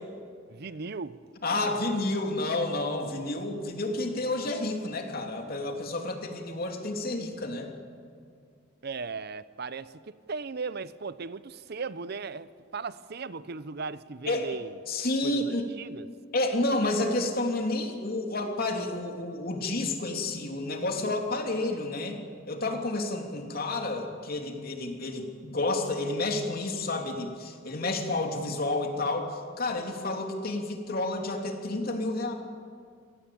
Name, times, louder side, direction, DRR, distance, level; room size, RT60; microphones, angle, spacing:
voice 1, 0.5-1.2 8.8-10.0 10.3-14.8 15.2-16.1, right 4 dB, 55° right, 16 dB, 0.7 m, -37 dB
voice 2, 1.4-7.7 14.3-14.5 14.9-15.7 16.3-22.2 22.5-32.3, left 2 dB, 50° left, 3 dB, 3.2 m, -30 dB
27.0 x 18.0 x 8.7 m, 2.1 s
head